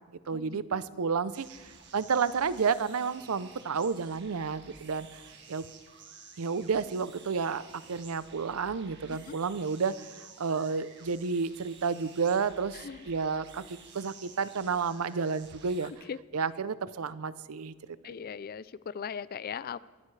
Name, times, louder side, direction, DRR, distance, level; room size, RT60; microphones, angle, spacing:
voice 1, 0.3-5.1 5.5-5.6 6.4-7.6 7.9-15.9 16.3-17.7, right 5 dB, 90° right, 16 dB, 0.6 m, -31 dB
sound 1, 1.3-15.9, right 5 dB, 55° right, 1.9 m, -53 dB
voice 2, 12.7-13.1 16.0-16.2 18.0-19.8, left 7 dB, 45° left, 18 dB, 0.4 m, -39 dB
23.0 x 14.0 x 3.3 m, 1.3 s
head